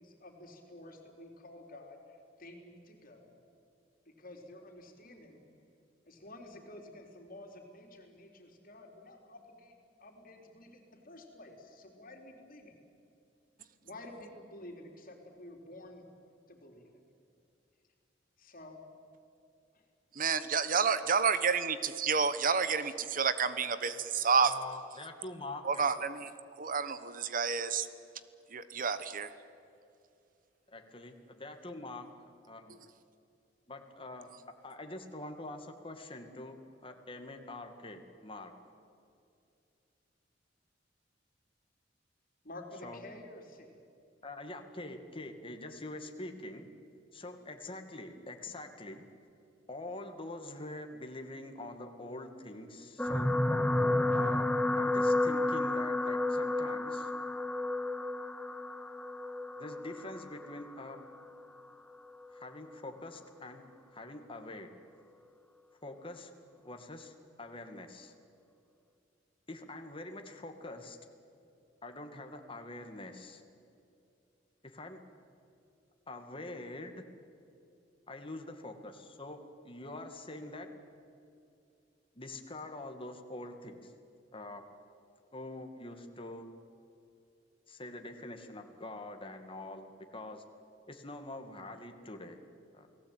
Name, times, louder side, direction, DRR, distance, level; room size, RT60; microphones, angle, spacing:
voice 1, 0.0-3.3 4.1-5.4 6.1-9.7 10.0-12.8 13.8-16.1 16.5-17.0 18.4-18.8 19.7-19.9 42.4-43.8, left 1 dB, 50° left, 3 dB, 4.1 m, -51 dB
voice 2, 20.1-24.5 25.6-26.3 26.6-27.9 28.5-29.3, right 5 dB, 50° right, 13 dB, 1.1 m, -29 dB
voice 3, 24.4-25.7 30.7-32.1 32.5-32.8 33.7-34.3 34.6-38.5 42.8-43.0 44.2-46.7 47.1-49.1 49.7-53.4 54.1-57.1 59.6-61.0 62.3-63.7 63.9-64.7 65.8-66.3 66.6-68.1 69.5-71.0 71.8-73.4 74.6-75.0 76.1-77.0 78.1-80.7 82.2-83.9 84.3-84.6 85.3-86.5 87.7-90.4 90.9-92.4 92.7-92.9, left 2 dB, 30° left, 5 dB, 2.2 m, -45 dB
sound 1, 53.0-61.4 62.2-62.4 62.7-62.8, left 2 dB, 5° left, 1.0 m, -31 dB
29.0 x 19.0 x 9.1 m, 2.5 s
head